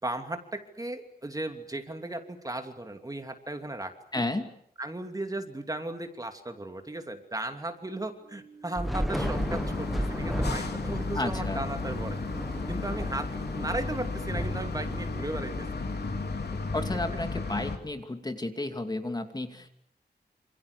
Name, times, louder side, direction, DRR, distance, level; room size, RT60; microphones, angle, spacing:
voice 1, 0.0-4.3 4.8-12.2 12.7-13.3 13.5-15.7, right 2 dB, 20° right, 6 dB, 2.9 m, -36 dB
voice 2, 4.1-4.5 11.1-11.6 16.7-19.7, left 2 dB, 25° left, 6 dB, 2.6 m, -32 dB
sound 1, 8.2-16.2, right 4 dB, 70° right, 4.2 m, -47 dB
Thunder / Rain, 8.7-16.3, equal, ahead, 1.4 m, -35 dB
sound 2, 9.1-17.8, left 3 dB, 75° left, 3.8 m, -34 dB
28.0 x 27.5 x 6.8 m, 0.69 s
wide cardioid pair, 135°, 17 cm